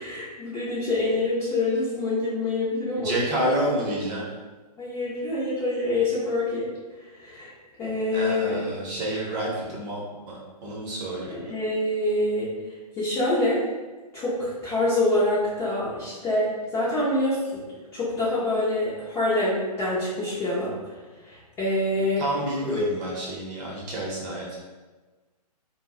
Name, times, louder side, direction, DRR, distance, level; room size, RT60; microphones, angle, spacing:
voice 1, 0.0-3.2 4.8-6.7 7.2-7.5 7.8-8.6 11.4-12.5 13.0-13.6 14.1-17.6 17.9-20.7 21.2-22.2 22.6-22.8, left 2 dB, 10° left, -9 dB, 0.4 m, -26 dB
voice 2, 2.9-4.3 8.1-11.5 22.2-24.6, right 1 dB, 30° right, -3 dB, 0.7 m, -29 dB
2.2 x 2.0 x 3.5 m, 1.3 s
figure-of-eight pair, 130°, 21 cm